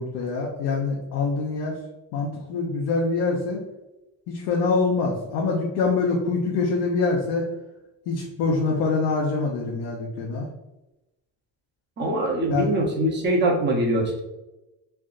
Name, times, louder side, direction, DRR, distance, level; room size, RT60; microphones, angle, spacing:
voice 1, 0.0-1.7 2.1-3.6 4.3-7.4 8.1-10.5 12.5-12.7, left 4 dB, 85° left, -2 dB, 0.7 m, -25 dB
voice 2, 12.0-14.2, right 1 dB, 30° right, -1 dB, 0.8 m, -23 dB
3.4 x 2.6 x 2.4 m, 0.96 s
cardioid pair, 130°, 37 cm